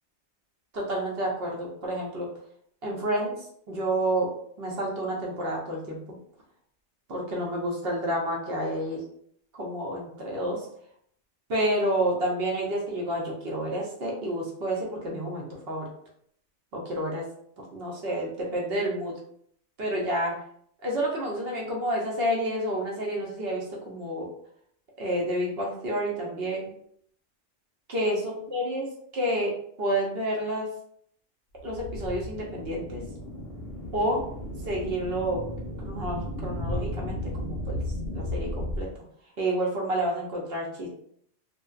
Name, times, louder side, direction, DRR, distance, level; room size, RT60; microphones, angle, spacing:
voice 1, 0.7-2.3 2.8-3.3 3.7-4.3 4.6-6.0 7.1-9.0 9.5-10.7 11.5-15.8 16.7-17.2 17.7-19.1 19.8-20.3 20.8-24.3 25.0-26.7 27.9-28.9 29.1-29.5 29.8-30.7 31.6-33.0 33.9-34.2 34.6-35.4 35.8-37.8 38.1-38.9 39.4-40.9, right 1 dB, 60° right, -2 dB, 0.7 m, -29 dB
sound 1, 31.6-38.8, left 1 dB, 60° left, 0.8 m, -34 dB
2.6 x 2.2 x 2.3 m, 0.66 s
omnidirectional pair, 1.4 m